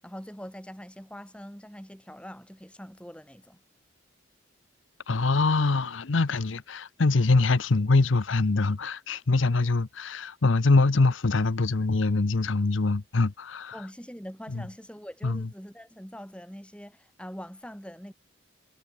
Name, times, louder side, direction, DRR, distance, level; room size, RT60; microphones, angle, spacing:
voice 1, 0.0-3.6 13.7-18.1, equal, 5° left, 8.0 m, -43 dB
voice 2, 5.1-13.7 15.2-15.4, left 3 dB, 75° left, 0.8 m, -24 dB
head